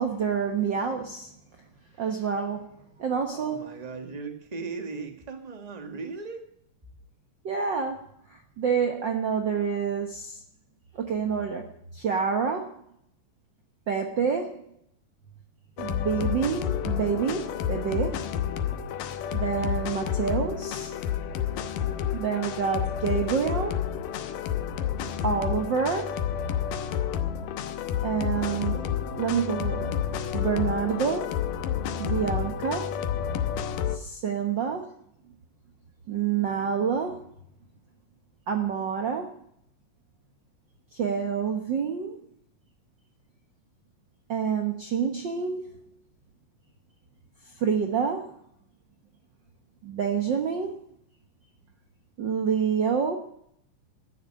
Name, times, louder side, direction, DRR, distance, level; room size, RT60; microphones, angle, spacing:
voice 1, 0.0-1.3 2.0-3.8 7.4-10.4 10.9-12.8 13.9-14.6 15.8-18.3 19.3-20.9 22.1-23.8 25.2-26.2 28.0-28.8 29.1-30.0 30.3-31.4 32.0-33.0 33.9-34.9 36.1-37.2 38.5-39.3 40.9-42.2 44.3-45.7 47.6-48.3 49.8-50.8 52.2-53.2, right 6 dB, 75° right, 4 dB, 1.0 m, -28 dB
voice 2, 3.3-6.4, right 4 dB, 20° right, 4 dB, 1.0 m, -37 dB
sound 1, 15.8-34.0, left 9 dB, 80° left, 2.5 m, -30 dB
12.5 x 10.0 x 8.8 m, 0.72 s
omnidirectional pair, 3.8 m